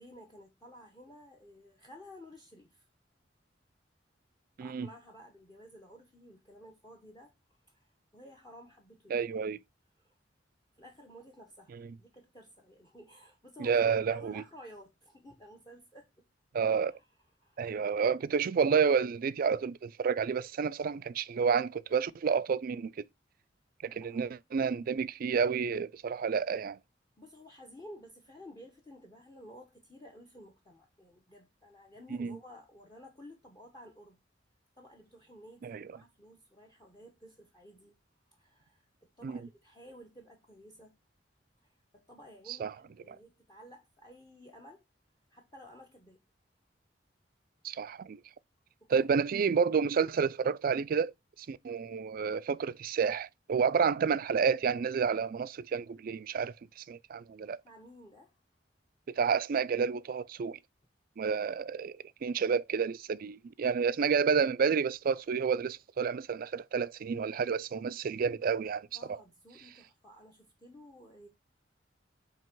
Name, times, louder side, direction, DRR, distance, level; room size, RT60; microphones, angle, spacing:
voice 1, 0.0-2.9 4.6-7.3 7.7-9.3 10.0-10.1 10.8-11.7 12.0-16.2 16.9-17.1 17.4-17.7 23.9-24.3 27.2-34.2 34.8-38.0 38.3-41.0 41.6-44.8 45.3-46.2 48.9-49.3 49.6-49.7 57.4-58.4 68.9-71.3, equal, 20° left, 0.9 m, -53 dB
voice 2, 9.1-9.6 13.6-14.3 16.5-16.9 17.6-22.9 23.8-26.8 32.1-32.4 35.6-35.8 39.2-39.4 42.6-42.7 43.1-43.2 47.6-48.2 48.9-51.1 51.5-56.5 56.9-57.6 59.1-60.6 61.2-69.2, right 6 dB, 50° right, 0.4 m, -30 dB
7.6 x 2.9 x 4.5 m
head